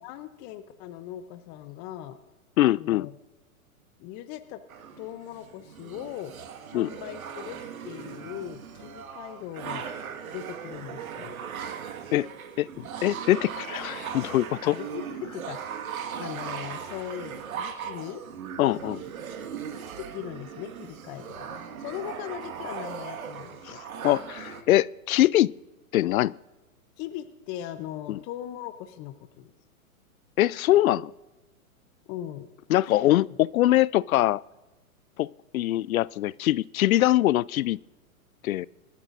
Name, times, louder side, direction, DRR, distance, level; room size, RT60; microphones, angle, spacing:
voice 1, 0.0-2.2 2.8-3.1 4.0-4.6 5.0-6.3 6.7-7.6 7.8-9.9 10.3-11.4 14.6-15.8 16.2-18.2 20.1-23.8 27.0-29.5 32.1-32.5 32.9-33.1, left 12 dB, 25° left, 10 dB, 0.6 m, -39 dB
voice 2, 2.6-3.1 6.7-6.9 12.1-12.3 12.6-14.7 18.6-19.0 23.6-23.8 24.0-25.5 25.9-26.4 28.1-28.2 30.4-31.1 32.7-34.4 35.2-37.8 38.4-38.7, left 15 dB, 70° left, 23 dB, 0.5 m, -23 dB
sound 1, 4.7-24.6, right 7 dB, 70° right, 1.8 m, -38 dB
27.0 x 12.0 x 2.5 m, 1.1 s
hypercardioid pair, 130°, 43 cm